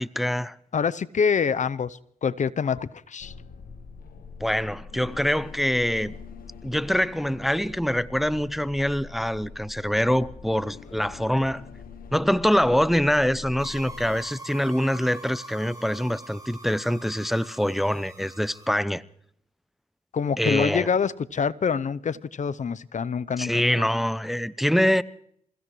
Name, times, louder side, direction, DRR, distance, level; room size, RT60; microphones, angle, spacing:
voice 1, 0.0-0.6 4.4-6.1 6.6-11.6 12.1-19.0 20.4-20.9 23.4-25.0, equal, ahead, 0.6 m, -24 dB
voice 2, 0.7-3.3 20.1-23.9, left 6 dB, 55° left, 0.7 m, -26 dB
sound 1, 3.2-14.2, left 5 dB, 75° left, 1.3 m, -44 dB
sound 2, 13.6-18.7, right 1 dB, 25° right, 5.9 m, -43 dB
27.5 x 16.0 x 3.2 m
cardioid pair, 55°, 15 cm